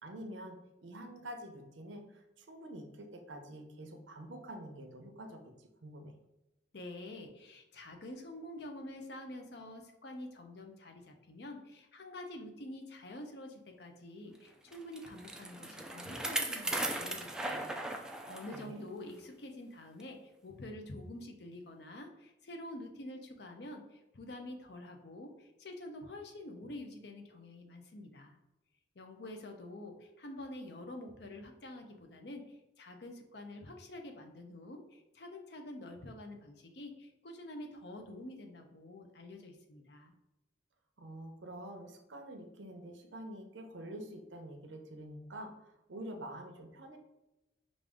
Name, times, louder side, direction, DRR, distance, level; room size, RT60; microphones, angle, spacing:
voice 1, 0.0-6.1 18.5-18.8 41.0-47.0, right 1 dB, 80° right, 4 dB, 0.7 m, -47 dB
voice 2, 6.7-17.8 18.0-28.4 29.0-40.1, left 1 dB, 60° left, 4 dB, 0.6 m, -47 dB
Bicycle, 14.7-18.7 19.1-19.2 20.0-20.1, right 1 dB, 5° right, 0.3 m, -37 dB
5.2 x 2.5 x 3.5 m, 0.96 s
head